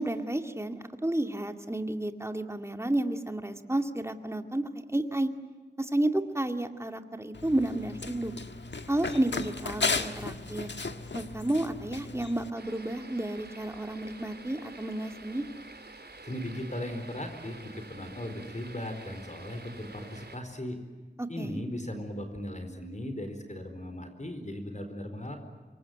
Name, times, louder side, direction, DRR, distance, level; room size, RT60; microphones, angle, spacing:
voice 1, 0.0-5.3 5.8-8.3 8.9-10.7 11.1-15.5 21.2-21.6, right 1 dB, 15° right, 6 dB, 2.3 m, -31 dB
Run, 7.3-12.5, left 4 dB, 90° left, 1.6 m, -35 dB
sound 1, 12.5-20.4, right 3 dB, 70° right, 3.7 m, -48 dB
voice 2, 16.2-20.8 21.3-25.4, left 1 dB, 40° left, 7 dB, 4.5 m, -37 dB
27.0 x 23.5 x 9.4 m, 1.4 s
wide cardioid pair, 45°, 18 cm